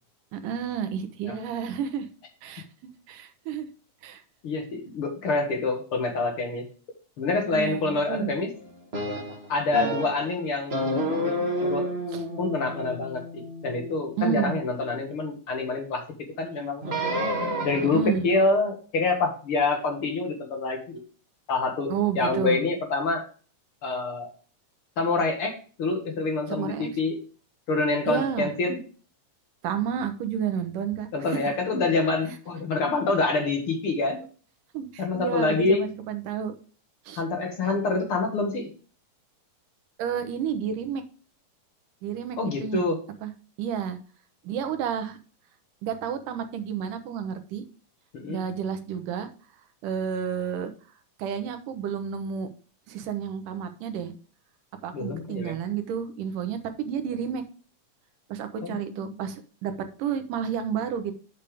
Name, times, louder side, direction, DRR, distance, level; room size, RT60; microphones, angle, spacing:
voice 1, 0.3-2.1 2.4-2.6 3.1-3.7 4.0-4.2 7.4-8.3 12.1-12.2 14.2-14.6 17.9-18.3 21.9-22.6 26.5-26.9 28.1-28.5 29.6-31.1 34.7-36.5 37.1-37.2 37.7-37.8 40.0-41.0 42.0-42.8 43.2-43.3 43.6-44.0 44.4-45.2 45.8-47.6 48.3-49.3 49.8-50.7 51.2-52.5 52.9-54.1 54.8-57.4 58.3-59.7 60.0-61.1, right 8 dB, 85° right, 8 dB, 2.6 m, -30 dB
voice 2, 4.4-6.6 7.2-8.5 9.5-11.9 12.4-16.0 16.4-16.8 17.6-21.0 21.5-23.2 23.8-24.3 25.0-27.2 27.7-28.8 31.1-34.2 35.0-35.8 37.2-38.7 42.4-43.0 48.1-48.4 54.9-55.6 58.6-59.2, left 3 dB, 50° left, 3 dB, 2.2 m, -26 dB
sound 1, 8.9-10.3 10.7-15.0 16.8-18.1, equal, 30° right, 1.2 m, -30 dB
8.2 x 6.8 x 3.5 m, 0.38 s
omnidirectional pair, 3.7 m